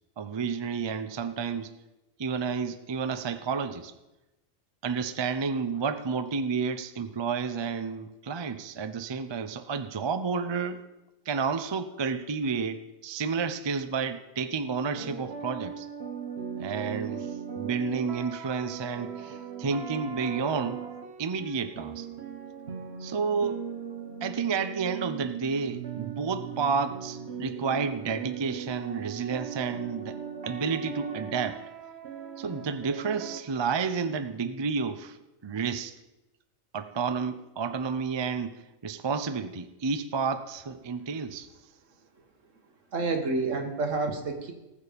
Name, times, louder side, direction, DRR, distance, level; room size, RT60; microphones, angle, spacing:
voice 1, 0.2-1.7 2.2-3.9 4.8-10.8 11.3-15.9 16.6-20.8 21.2-22.1 23.0-23.6 24.2-30.2 30.5-31.6 32.4-35.2 35.4-35.9 36.7-41.5, right 5 dB, 35° right, 10 dB, 0.4 m, -31 dB
sound 1, 14.9-33.4, right 7 dB, 55° right, 1.3 m, -39 dB
voice 2, 42.9-44.5, right 3 dB, 70° right, 5 dB, 1.8 m, -29 dB
19.0 x 7.0 x 5.2 m, 1.0 s
omnidirectional pair, 1.4 m